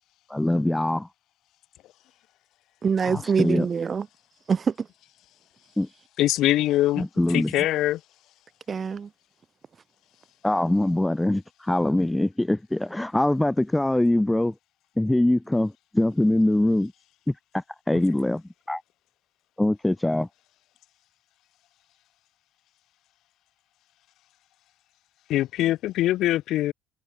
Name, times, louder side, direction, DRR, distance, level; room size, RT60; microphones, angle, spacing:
voice 1, 0.3-1.1 3.0-3.7 5.8-5.9 7.0-7.5 10.4-14.5 15.0-16.9 17.3-18.8 19.6-20.3, left 1 dB, 5° left, 0.9 m, -23 dB
voice 2, 2.8-4.1 4.5-4.9 8.7-9.1, right 6 dB, 35° right, 2.3 m, -24 dB
voice 3, 6.2-7.1 7.3-8.0 25.3-26.7, left 14 dB, 70° left, 2.5 m, -23 dB
cardioid pair, 100°, 0 cm